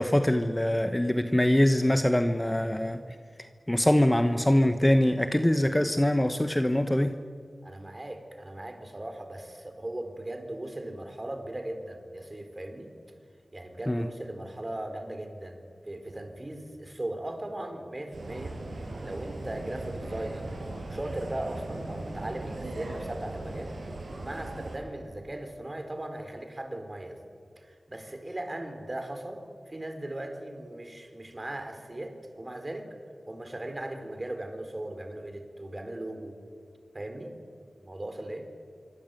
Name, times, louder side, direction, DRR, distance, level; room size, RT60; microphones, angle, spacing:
voice 1, 0.0-3.0 3.7-7.2 13.9-14.1, left 1 dB, 15° left, 8 dB, 1.1 m, -23 dB
voice 2, 7.6-12.9 13.5-18.6 19.0-20.5 20.9-23.8 24.2-27.2 27.6-32.9 33.3-36.4 36.9-37.3 37.8-38.5, right 1 dB, 30° right, 6 dB, 4.4 m, -38 dB
sound 1, 18.1-24.8, right 2 dB, 80° right, 6.4 m, -38 dB
26.0 x 24.5 x 9.4 m, 2.1 s
wide cardioid pair, 80°, 0 cm